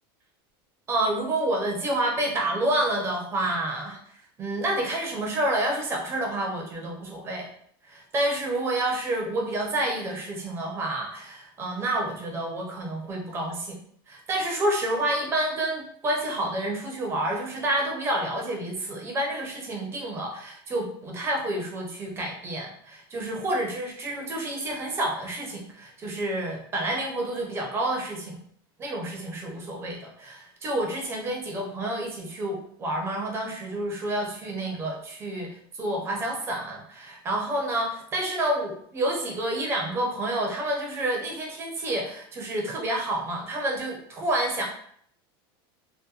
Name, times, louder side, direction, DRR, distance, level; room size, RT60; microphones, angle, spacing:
voice 1, 0.9-4.0 4.4-7.5 7.8-13.8 14.1-28.4 28.8-44.6, right 1 dB, 20° right, 0 dB, 0.5 m, -29 dB
2.7 x 2.1 x 2.3 m, 0.64 s
supercardioid pair, 160°, 13 cm